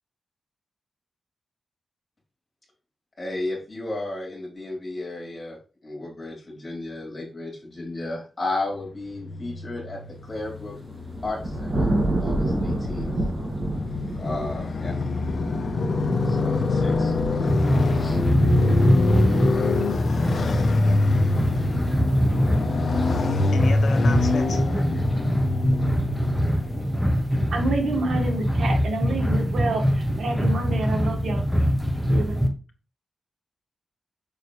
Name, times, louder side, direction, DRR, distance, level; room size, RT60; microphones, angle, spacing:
voice 1, 3.2-10.8 11.2-13.1 14.2-15.0 16.2-17.6 17.9-18.2, left 2 dB, 30° left, -2 dB, 3.8 m, -34 dB
Motorcycle, 9.1-27.3, left 3 dB, 50° left, 1.0 m, -25 dB
sound 1, 10.6-24.8, right 1 dB, 30° right, 2.0 m, -32 dB
sound 2, 17.5-32.5, equal, ahead, 1.1 m, -23 dB
voice 2, 23.5-24.6, left 4 dB, 75° left, 5 dB, 1.2 m, -31 dB
voice 3, 27.5-31.5 32.1-32.5, right 2 dB, 75° right, 2 dB, 2.0 m, -28 dB
6.8 x 5.7 x 3.3 m, 0.35 s
wide cardioid pair, 165°, 0 cm